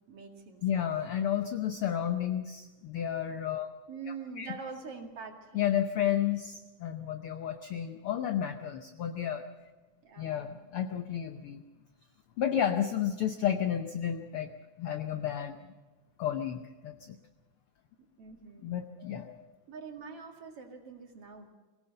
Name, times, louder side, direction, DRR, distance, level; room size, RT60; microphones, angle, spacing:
voice 1, 0.1-0.9 3.9-5.7 10.0-10.6 18.0-18.7 19.7-21.5, right 5 dB, 50° right, 2 dB, 3.0 m, -45 dB
voice 2, 0.6-3.7 4.4-4.5 5.5-9.4 10.2-11.6 12.4-14.5 14.8-15.6 16.2-17.1 18.6-19.4, left 10 dB, 75° left, 7 dB, 1.3 m, -32 dB
24.0 x 17.0 x 6.7 m, 1.2 s
omnidirectional pair, 3.5 m